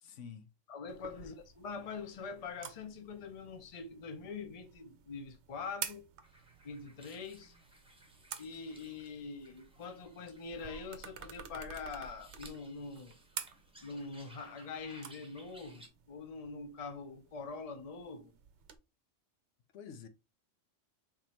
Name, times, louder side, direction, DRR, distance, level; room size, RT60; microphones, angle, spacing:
voice 1, 0.0-0.5 19.7-20.1, left 7 dB, 75° left, 1.0 m, -48 dB
voice 2, 0.7-6.1 6.6-7.5 8.4-13.2 13.8-18.3, left 4 dB, 40° left, 0.7 m, -44 dB
sound 1, 0.9-18.8, right 8 dB, 70° right, 0.9 m, -50 dB
sound 2, 6.2-15.9, right 1 dB, 5° right, 0.9 m, -60 dB
4.8 x 3.6 x 2.9 m
omnidirectional pair, 1.3 m